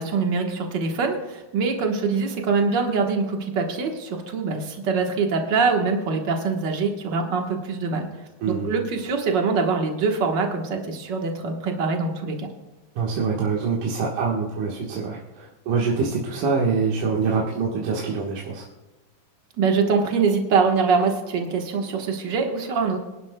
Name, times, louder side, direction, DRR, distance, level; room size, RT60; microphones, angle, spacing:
voice 1, 0.0-8.1 8.5-12.5 19.6-23.0, right 4 dB, 85° right, 2 dB, 0.9 m, -24 dB
voice 2, 8.4-8.7 13.0-18.7, right 5 dB, 70° right, -3 dB, 2.8 m, -25 dB
24.0 x 11.5 x 2.2 m, 1.1 s
omnidirectional pair, 4.0 m